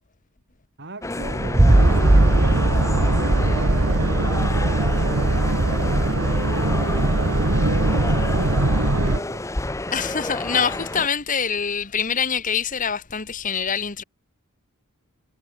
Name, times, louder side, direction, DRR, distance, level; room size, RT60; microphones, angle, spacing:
voice 1, 0.8-6.0 6.5-9.4, right 1 dB, 50° right, 3.1 m, -37 dB
sound 1, 1.0-11.1, left 2 dB, 15° left, 0.7 m, -30 dB
sound 2, 1.2-4.0, right 1 dB, 15° right, 0.4 m, -19 dB
Boat Water vehicle, 1.7-9.2, right 2 dB, 70° right, 1.6 m, -21 dB
voice 2, 9.9-14.0, left 6 dB, 35° left, 1.4 m, -25 dB
head